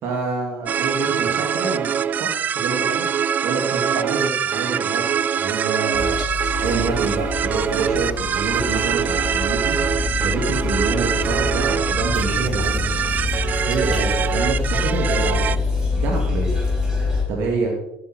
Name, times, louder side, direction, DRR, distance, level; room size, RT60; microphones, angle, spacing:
voice 1, 0.0-3.1 3.4-6.1 6.6-9.8 10.2-12.8 13.6-15.6 15.9-16.5 17.3-17.7, right 4 dB, 65° right, -1 dB, 2.8 m, -27 dB
sound 1, 0.7-15.6, right 8 dB, 45° right, 0.4 m, -23 dB
sound 2, 5.9-17.2, left 3 dB, 15° right, 5.3 m, -25 dB
12.5 x 9.8 x 4.6 m, 0.86 s
supercardioid pair, 95°, 4 cm